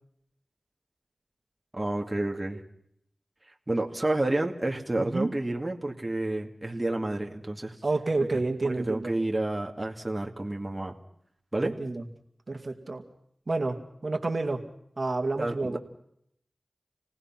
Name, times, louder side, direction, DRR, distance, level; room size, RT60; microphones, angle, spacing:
voice 1, 1.7-2.6 3.7-7.7 8.6-10.9 11.5-11.8 15.4-15.8, right 2 dB, 25° right, 1 dB, 2.3 m, -30 dB
voice 2, 5.0-5.3 7.8-9.1 11.6-12.0 12.5-13.0 13.5-14.6 15.0-15.8, right 3 dB, 55° right, 4 dB, 2.3 m, -29 dB
28.0 x 18.5 x 6.0 m, 0.73 s
wide cardioid pair, 55°, 0 cm